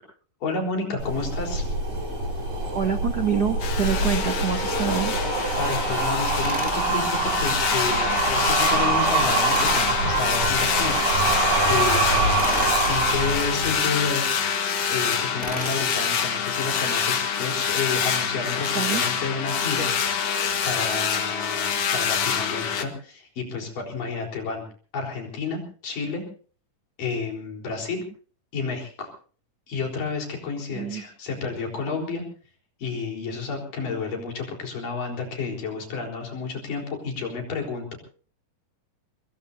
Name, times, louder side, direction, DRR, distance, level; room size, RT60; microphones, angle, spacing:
voice 1, 0.4-1.7 5.5-12.4 12.9-14.4 14.9-24.6 24.9-26.2 27.0-28.0 28.5-29.1 29.7-32.2 32.8-38.0, left 4 dB, 80° left, 1 dB, 5.7 m, -31 dB
sound 1, 1.0-14.0, right 3 dB, 75° right, 9.8 m, -25 dB
voice 2, 2.7-5.1 18.7-19.0 30.7-31.0, right 7 dB, 60° right, 5 dB, 1.0 m, -26 dB
sound 2, 3.6-22.8, left 7 dB, 55° left, 2.5 m, -26 dB
Tools, 6.4-6.8 9.4-9.9 12.4-12.8 15.4-15.8, equal, 5° right, 2.3 m, -34 dB
24.5 x 21.5 x 2.7 m, 0.42 s
omnidirectional pair, 3.7 m